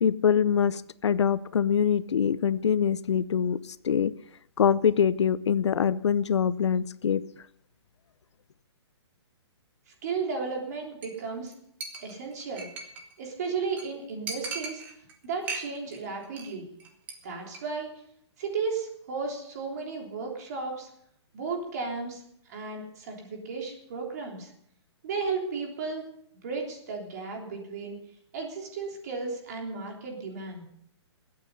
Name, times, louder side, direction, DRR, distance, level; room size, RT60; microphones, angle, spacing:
voice 1, 0.0-4.1 4.6-7.2, left 7 dB, 75° left, 0.7 m, -24 dB
voice 2, 10.0-11.5 12.0-12.7 13.2-14.8 15.2-16.7 17.2-17.9 18.4-20.9 21.3-22.2 22.5-24.5 25.0-26.0 26.4-28.0 28.3-30.6, right 4 dB, 35° right, 3.4 m, -34 dB
Chink clink, 11.0-11.2 11.5-11.6 11.8-13.1 13.4-13.5 13.8-13.9 14.3-15.1 15.4-16.0 16.2-16.5 16.8-17.1 17.4-17.6, right 4 dB, 10° right, 1.2 m, -37 dB
21.0 x 8.8 x 5.5 m
hypercardioid pair, 175°, 15 cm